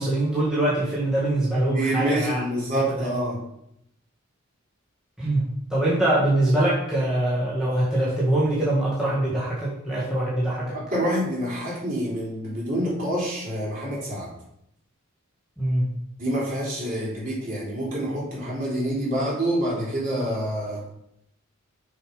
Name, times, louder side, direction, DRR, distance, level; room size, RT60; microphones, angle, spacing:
voice 1, 0.0-2.4 3.0-3.1 5.2-10.8 15.6-15.9, right 1 dB, 5° right, -9 dB, 1.7 m, -23 dB
voice 2, 1.6-3.4 10.7-14.3 16.2-20.8, right 1 dB, 40° right, -6 dB, 3.5 m, -27 dB
6.3 x 5.7 x 5.1 m, 0.76 s
head